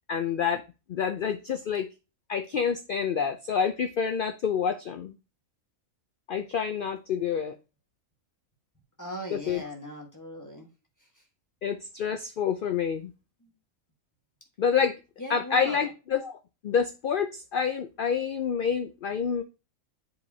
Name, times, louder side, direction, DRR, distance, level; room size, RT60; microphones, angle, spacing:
voice 1, 0.1-0.6 0.9-1.9 2.3-5.1 6.3-7.6 9.3-9.6 11.6-13.1 14.6-15.0 15.3-16.4 16.6-19.4, left 7 dB, 80° left, 8 dB, 0.4 m, -28 dB
voice 2, 9.0-10.7 13.4-13.5 15.2-15.9, left 1 dB, 15° left, 0 dB, 1.3 m, -39 dB
7.7 x 4.6 x 2.7 m, 0.29 s
omnidirectional pair, 1.5 m